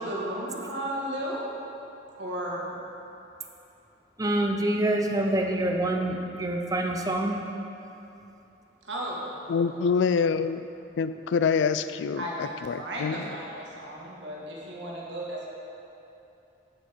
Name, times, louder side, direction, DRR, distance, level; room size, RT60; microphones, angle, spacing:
voice 1, 0.0-1.4 2.2-2.7 8.8-9.3 9.8-9.9 12.2-15.5, right 1 dB, 70° right, -4 dB, 1.5 m, -34 dB
voice 2, 4.2-7.4, right 1 dB, 20° right, 2 dB, 0.6 m, -26 dB
voice 3, 9.5-10.7 11.0-13.3, left 6 dB, 70° left, 12 dB, 0.3 m, -26 dB
8.8 x 7.2 x 4.4 m, 2.8 s
head